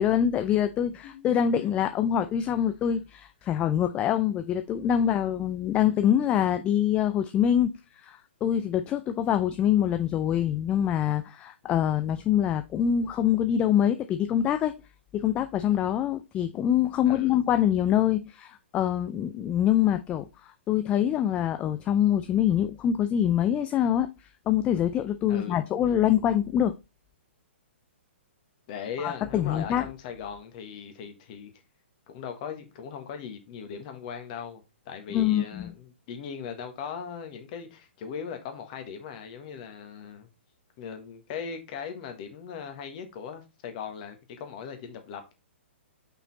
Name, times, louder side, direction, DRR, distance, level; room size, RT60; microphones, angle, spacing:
voice 1, 0.0-7.7 8.0-14.7 15.1-20.2 20.7-24.1 24.5-26.7 29.0-29.9 35.1-35.7, left 10 dB, 20° left, 0.3 m, -25 dB
voice 2, 1.0-1.7 17.1-17.4 25.3-25.6 28.7-31.5 32.1-40.3 40.8-45.3, left 7 dB, 40° left, 1.4 m, -39 dB
5.6 x 4.2 x 4.0 m
figure-of-eight pair, 120°, 7 cm